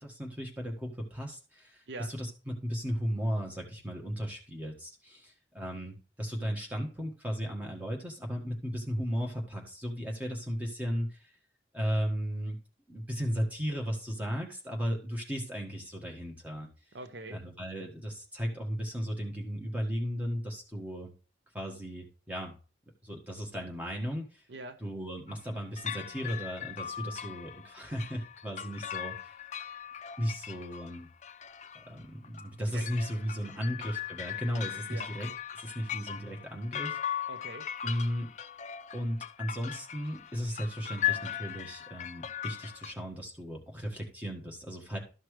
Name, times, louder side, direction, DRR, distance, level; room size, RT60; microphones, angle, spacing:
voice 1, 0.0-11.3 11.7-12.6 12.9-16.7 17.3-21.1 21.5-22.5 23.0-24.4 24.8-29.3 30.2-31.1 31.7-37.0 37.8-38.3 38.9-45.0, equal, 10° right, 1.6 m, -35 dB
voice 2, 16.9-17.4 24.5-24.8 32.7-32.9 33.4-33.6 34.9-35.1 37.3-37.7, right 2 dB, 80° right, 0.8 m, -43 dB
sound 1, 25.3-25.5 25.8-42.9, left 10 dB, 40° left, 0.4 m, -39 dB
13.0 x 5.9 x 3.2 m
head